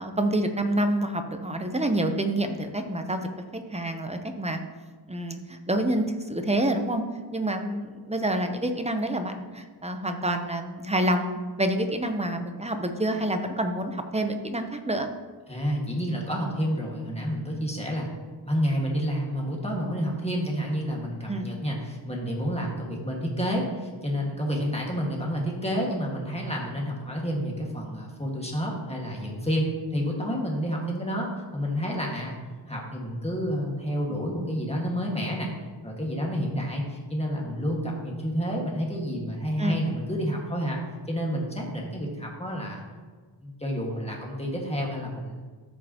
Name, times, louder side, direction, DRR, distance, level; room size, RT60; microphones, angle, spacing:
voice 1, 0.0-4.6 5.1-7.0 7.3-15.1 21.3-21.5 39.6-39.8, right 1 dB, 15° right, 6 dB, 0.6 m, -27 dB
voice 2, 15.5-18.1 18.5-32.4 32.7-35.5 35.8-40.8 41.1-42.8 43.4-45.4, equal, 15° left, -2 dB, 1.6 m, -29 dB
13.0 x 5.4 x 2.9 m, 1.4 s
wide cardioid pair, 100°, 45 cm